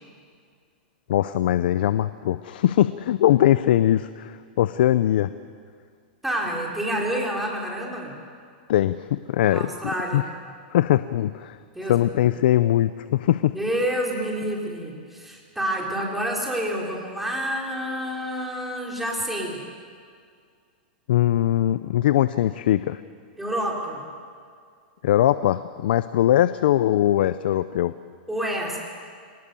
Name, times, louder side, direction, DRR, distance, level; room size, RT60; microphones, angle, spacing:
voice 1, 1.1-5.3 8.7-9.7 10.1-10.2 10.7-11.6 11.9-13.5 21.1-23.0 25.0-27.9, left 12 dB, 70° left, 14 dB, 0.6 m, -21 dB
voice 2, 6.2-8.1 9.4-10.3 11.7-12.3 13.5-19.6 23.4-24.0 28.3-28.8, right 1 dB, 5° right, -2 dB, 4.3 m, -28 dB
25.0 x 19.5 x 7.0 m, 2.1 s
hypercardioid pair, 135°, 5 cm